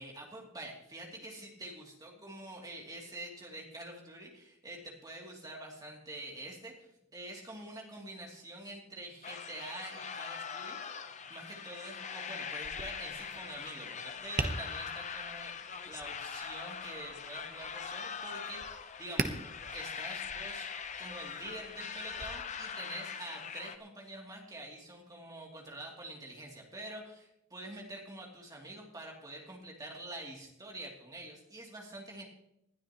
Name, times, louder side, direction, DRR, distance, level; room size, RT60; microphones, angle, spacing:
voice 1, 0.0-11.0 11.3-19.4 19.7-20.7 21.0-32.2, right 1 dB, 20° right, -1 dB, 2.8 m, -46 dB
sound 1, 9.2-23.8, left 6 dB, 35° left, 0.7 m, -42 dB
Tap, 12.6-22.3, right 3 dB, 40° right, 1.0 m, -43 dB
20.5 x 12.5 x 3.0 m, 0.80 s
head